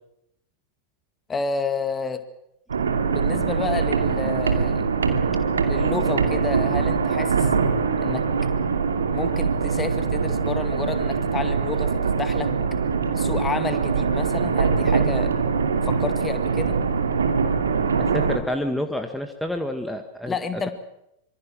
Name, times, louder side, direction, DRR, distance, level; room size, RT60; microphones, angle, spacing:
voice 1, 1.3-2.2 3.1-4.9 5.6-7.5 8.0-8.3 9.1-12.5 13.2-15.3 15.9-16.8 20.3-20.7, left 5 dB, 15° left, 10 dB, 2.1 m, -30 dB
sound 1, 2.7-18.4, right 5 dB, 70° right, 2.5 m, -23 dB
voice 2, 18.0-20.3, left 1 dB, ahead, 6 dB, 1.9 m, -28 dB
26.0 x 23.5 x 6.3 m, 0.79 s
figure-of-eight pair, 90°, 0 cm